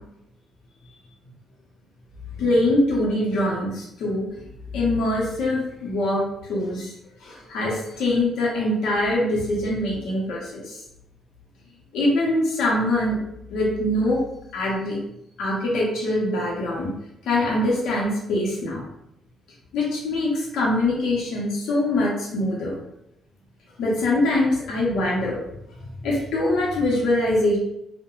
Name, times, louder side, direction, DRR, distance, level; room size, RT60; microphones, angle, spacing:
voice 1, 2.4-4.2 4.7-6.9 7.2-10.8 11.9-13.2 13.5-14.2 14.5-15.0 15.4-16.9 17.3-18.8 19.7-22.8 23.8-25.4 26.0-27.6, left 1 dB, 80° left, -4 dB, 0.7 m, -23 dB
2.3 x 2.1 x 3.0 m, 0.81 s
cardioid pair, 90°, 0 cm